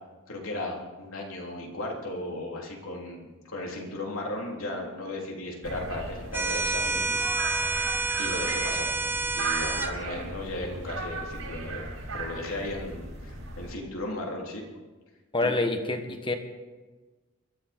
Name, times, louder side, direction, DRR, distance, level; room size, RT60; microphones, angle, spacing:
voice 1, 0.3-7.2 8.2-8.9 9.3-11.8 12.1-14.6 15.4-15.5, left 2 dB, 75° left, 0 dB, 3.3 m, -36 dB
sound 1, 5.6-13.7, right 3 dB, 85° right, 5.9 m, -36 dB
sound 2, 6.3-9.9, right 4 dB, 10° right, 0.7 m, -28 dB
voice 2, 15.3-16.3, left 2 dB, 25° left, 6 dB, 1.4 m, -27 dB
22.5 x 13.5 x 4.4 m, 1.2 s
head